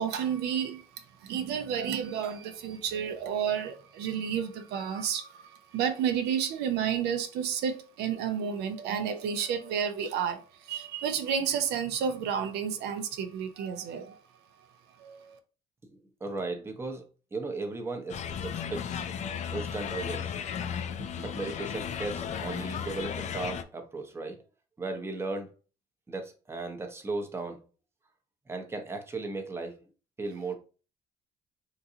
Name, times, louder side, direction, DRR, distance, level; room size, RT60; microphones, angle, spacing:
voice 1, 0.0-14.2 15.0-15.4, right 8 dB, 80° right, 0.5 m, -31 dB
voice 2, 16.2-17.0 17.3-19.0 19.5-20.3 21.2-24.4 24.8-25.5 26.1-27.6 28.5-29.8 30.2-30.5, right 3 dB, 15° right, 0.6 m, -36 dB
sound 1, 18.1-23.6, left 8 dB, 45° left, 0.4 m, -35 dB
3.7 x 2.5 x 2.7 m
cardioid pair, 110°, 17 cm